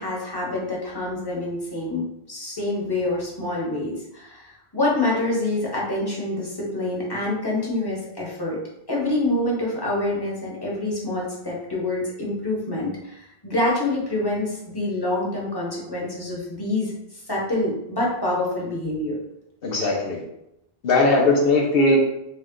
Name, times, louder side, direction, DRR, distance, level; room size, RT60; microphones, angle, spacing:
voice 1, 0.0-8.6 8.9-16.9 17.3-19.2, left 2 dB, 25° left, -4 dB, 1.0 m, -26 dB
voice 2, 19.6-20.2 20.8-22.0, left 2 dB, 65° left, -2 dB, 0.9 m, -19 dB
3.1 x 2.8 x 3.7 m, 0.84 s
omnidirectional pair, 1.1 m